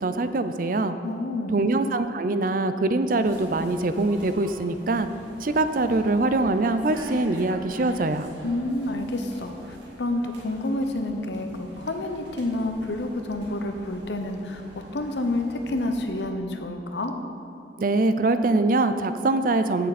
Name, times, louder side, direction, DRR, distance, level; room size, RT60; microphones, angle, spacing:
voice 1, 0.0-0.9 1.5-5.1 5.4-8.3 17.8-19.9, right 2 dB, 50° right, 10 dB, 0.5 m, -23 dB
voice 2, 1.0-1.6 8.4-14.6 14.9-17.1, left 2 dB, 80° left, 6 dB, 0.9 m, -29 dB
sound 1, 3.2-16.3, right 1 dB, 85° right, 2.1 m, -45 dB
16.0 x 6.7 x 4.2 m, 2.8 s
head